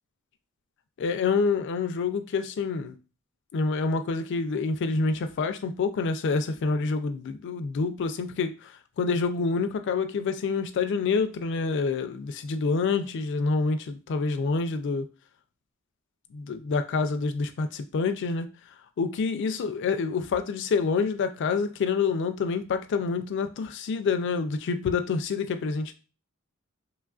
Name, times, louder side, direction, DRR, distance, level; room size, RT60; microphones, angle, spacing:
voice 1, 1.0-3.0 3.5-15.1 16.3-18.5 19.0-25.9, left 4 dB, 60° left, 0.3 m, -27 dB
3.0 x 2.4 x 2.3 m
head